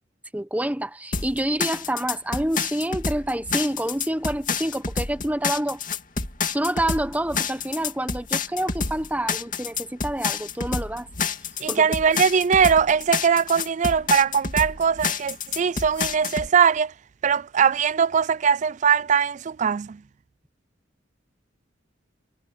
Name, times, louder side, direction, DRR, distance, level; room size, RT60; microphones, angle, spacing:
voice 1, 0.3-5.8 6.5-11.1 11.7-11.8, right 1 dB, 10° right, 1.1 m, -27 dB
sound 1, 1.1-16.5, left 5 dB, 45° left, 2.5 m, -28 dB
voice 2, 11.6-16.9 17.2-20.0, right 7 dB, 40° right, 0.4 m, -21 dB
head